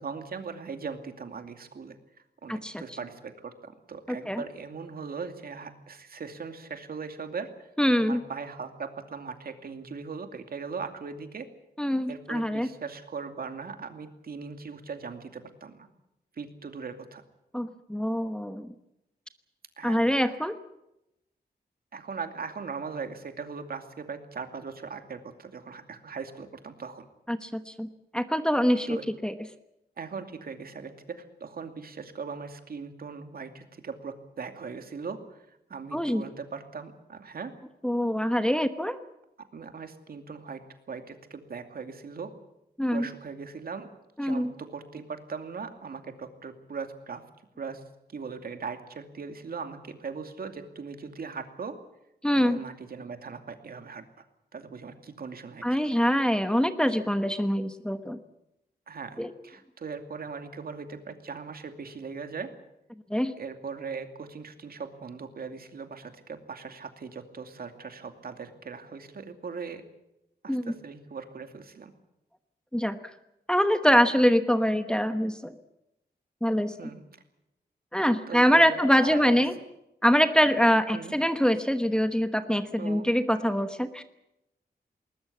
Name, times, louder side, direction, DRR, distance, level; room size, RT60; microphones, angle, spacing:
voice 1, 0.0-2.0 2.4-7.7 8.0-11.5 12.1-15.9 16.3-17.2 19.8-20.0 21.9-27.1 28.9-29.0 30.0-37.5 39.5-40.6 40.9-42.3 42.9-43.9 44.2-47.2 47.6-47.8 48.1-51.8 52.3-54.2 54.5-55.9 58.9-59.2 59.4-62.5 63.4-69.8 70.4-71.9 76.7-77.0 78.3-79.4 80.9-81.1 82.8-83.1, right 5 dB, 65° right, 7 dB, 2.6 m, -39 dB
voice 2, 2.5-3.0 4.3-4.4 7.8-8.2 11.8-12.7 17.5-18.7 19.8-20.6 27.3-29.3 35.9-36.2 37.8-39.0 42.8-43.1 44.2-44.5 52.2-52.6 55.6-58.2 59.2-59.3 63.1-63.3 70.5-70.7 72.7-73.0 73.5-75.5 76.4-76.9 77.9-79.5 80.0-84.0, equal, 5° left, 8 dB, 1.1 m, -24 dB
20.5 x 20.0 x 8.5 m, 0.86 s
wide cardioid pair, 155°, 17 cm